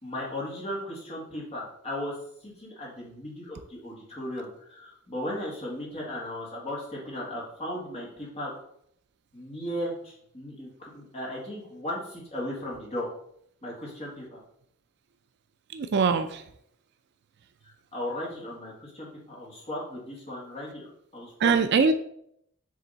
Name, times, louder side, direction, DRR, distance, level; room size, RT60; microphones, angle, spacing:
voice 1, 0.0-2.1 2.4-8.5 9.3-13.1 13.6-14.4 17.6-20.9 21.1-21.9, left 1 dB, 30° left, -4 dB, 1.9 m, -36 dB
voice 2, 15.7-16.4 21.4-21.9, right 5 dB, 50° right, 10 dB, 0.4 m, -22 dB
7.4 x 3.4 x 3.9 m, 0.70 s
head